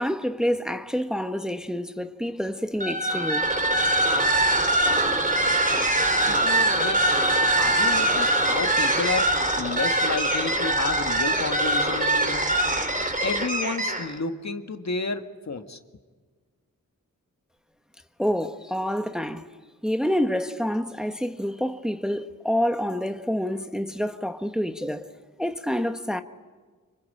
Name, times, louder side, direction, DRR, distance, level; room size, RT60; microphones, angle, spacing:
voice 1, 0.0-3.5 18.2-19.4 19.8-25.1 25.4-26.2, equal, ahead, 1.2 m, -27 dB
sound 1, 2.7-14.2, right 1 dB, 25° right, 3.6 m, -23 dB
voice 2, 6.1-7.2 7.5-12.5 13.2-15.8, left 4 dB, 55° left, 1.9 m, -31 dB
26.0 x 25.5 x 8.7 m
cardioid pair, 65°, 34 cm